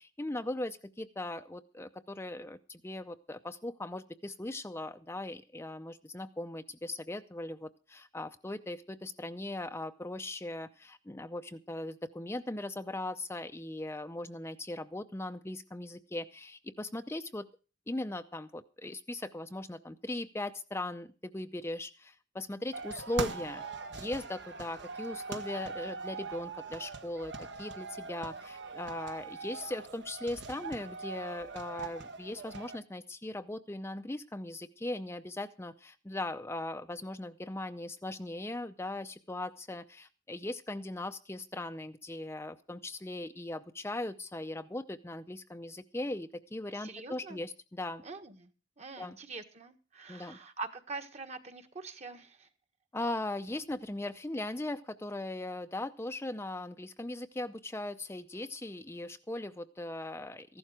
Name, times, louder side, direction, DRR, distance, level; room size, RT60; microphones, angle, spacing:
voice 1, 0.0-17.5 17.9-23.6 23.9-48.0 49.0-49.2 50.1-50.4 52.9-60.6, left 1 dB, 15° left, 8 dB, 0.6 m, -39 dB
sound 1, 22.7-32.8, right 4 dB, 70° right, 1.4 m, -41 dB
voice 2, 46.7-47.4 48.0-48.5 48.8-52.5, right 4 dB, 40° right, 8 dB, 1.5 m, -44 dB
15.0 x 12.0 x 5.0 m, 0.35 s
head